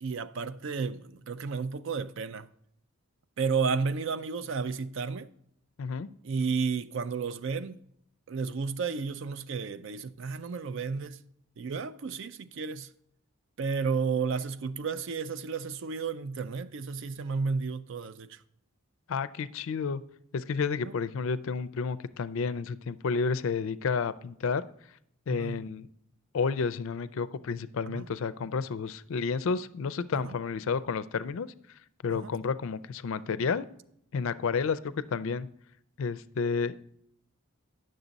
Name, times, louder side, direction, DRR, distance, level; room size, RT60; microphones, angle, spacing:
voice 1, 0.0-2.5 3.4-5.3 6.2-7.8 8.3-11.2 11.6-12.9 13.6-18.4 20.8-20.9 25.3-25.6 27.9-28.1 30.2-30.3 32.1-32.3, right 5 dB, 60° right, 0.4 m, -32 dB
voice 2, 19.1-20.0 20.3-24.7 25.3-25.9 26.3-31.5 32.0-33.7 34.1-35.5 36.0-36.8, left 5 dB, 65° left, 0.4 m, -31 dB
9.9 x 6.6 x 4.0 m
head